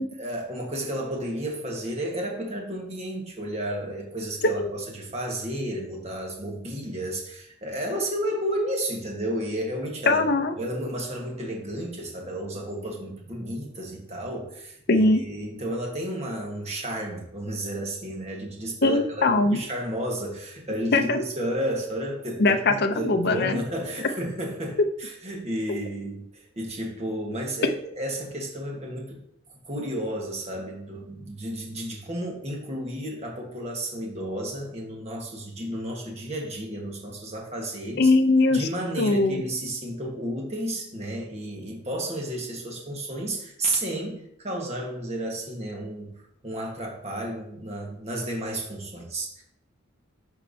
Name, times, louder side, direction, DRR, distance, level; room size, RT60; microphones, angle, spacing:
voice 1, 0.2-10.2 10.6-29.2 29.6-38.1 38.5-49.4, right 1 dB, 30° right, 0 dB, 1.4 m, -32 dB
voice 2, 10.1-10.5 14.9-15.2 18.8-19.6 20.9-21.2 22.4-23.6 38.0-38.7 39.0-39.4, left 2 dB, 50° left, 7 dB, 0.5 m, -21 dB
11.5 x 4.4 x 2.7 m, 0.72 s
head